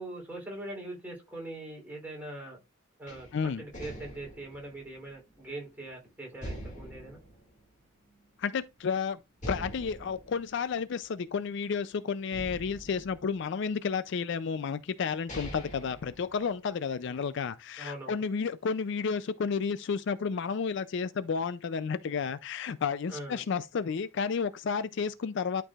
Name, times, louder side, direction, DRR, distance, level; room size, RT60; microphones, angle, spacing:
voice 1, 0.0-2.6 3.0-7.2 17.1-17.3 17.8-18.2 23.1-23.4, right 1 dB, 10° right, 3.1 m, -42 dB
sound 1, 3.1-5.9 6.4-8.3 8.7-8.8 9.4-11.8 12.3-13.9 14.6-14.7 15.1-16.9, equal, 35° left, 2.2 m, -44 dB
voice 2, 3.3-3.6 8.4-9.2 9.5-25.6, left 6 dB, 55° left, 0.4 m, -31 dB
11.5 x 4.6 x 2.4 m
head